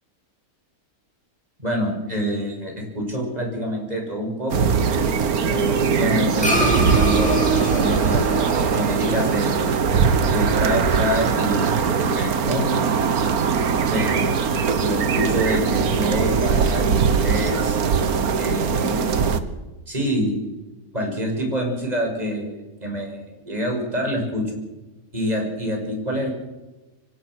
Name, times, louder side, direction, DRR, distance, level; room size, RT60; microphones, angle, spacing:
voice 1, 1.6-4.7 5.5-9.8 10.3-12.7 13.9-14.5 14.8-17.8 18.4-19.2 19.9-20.4 20.9-24.6 25.1-26.3, equal, 25° right, 1 dB, 6.5 m, -27 dB
sound 1, 4.5-19.4, right 6 dB, 75° right, 1.7 m, -21 dB
sound 2, 6.4-11.0, equal, 5° left, 6.0 m, -27 dB
24.5 x 18.5 x 6.3 m, 1.1 s
omnidirectional pair, 1.6 m